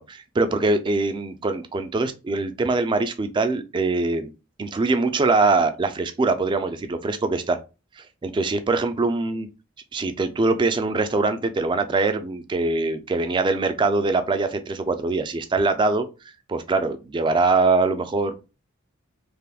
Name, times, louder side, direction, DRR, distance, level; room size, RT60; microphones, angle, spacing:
voice 1, 0.0-4.3 4.6-7.6 8.2-9.5 9.9-16.1 16.5-18.5, right 3 dB, 20° right, 9 dB, 0.3 m, -23 dB
3.4 x 2.5 x 2.3 m, 0.30 s
head